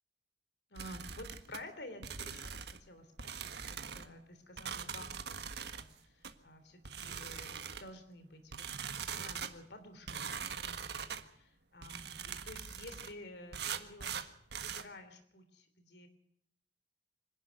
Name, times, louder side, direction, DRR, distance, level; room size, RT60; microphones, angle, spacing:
voice 1, 0.7-8.7 9.1-16.1, left 1 dB, 65° left, 9 dB, 3.2 m, -52 dB
sound 1, 0.8-1.6 2.0-2.8 3.2-4.1 4.6-5.9 6.2-6.4 6.8-7.9 8.5-9.5 10.1-11.2 11.8-13.1 13.5-14.9, right 7 dB, 65° right, 1.5 m, -42 dB
25.5 x 11.0 x 9.4 m, 0.72 s
head